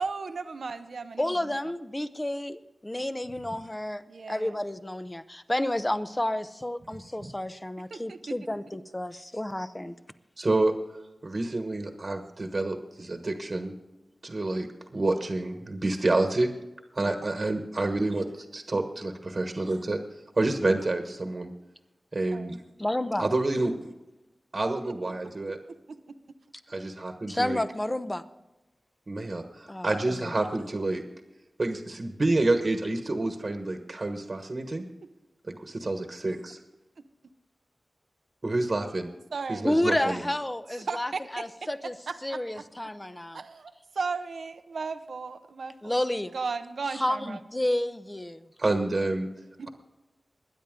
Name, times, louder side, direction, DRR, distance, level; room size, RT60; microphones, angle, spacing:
voice 1, 0.0-1.3 4.1-4.6 7.9-8.4 9.1-9.2 17.2-17.3 22.3-22.5 25.9-26.0 39.3-40.1 40.9-41.4 42.1-42.6 43.3-46.0 46.3-47.4 49.6-49.7, right 4 dB, 85° right, 10 dB, 0.7 m, -35 dB
voice 2, 1.2-9.9 17.0-17.1 22.8-23.3 27.3-28.2 29.7-29.9 30.2-30.3 39.6-41.9 42.2-43.4 45.8-46.3 46.9-48.5, left 1 dB, 15° left, 11 dB, 0.7 m, -30 dB
voice 3, 10.4-10.7 11.2-13.7 14.2-14.7 14.9-16.5 16.9-20.0 20.4-21.5 22.1-22.6 23.2-23.7 24.5-25.6 26.7-27.6 29.1-31.0 31.6-34.8 35.5-36.6 38.4-39.1 39.5-40.2 48.6-49.3, right 2 dB, 45° right, 5 dB, 1.3 m, -28 dB
21.5 x 9.9 x 3.8 m, 0.99 s
wide cardioid pair, 90°, 0 cm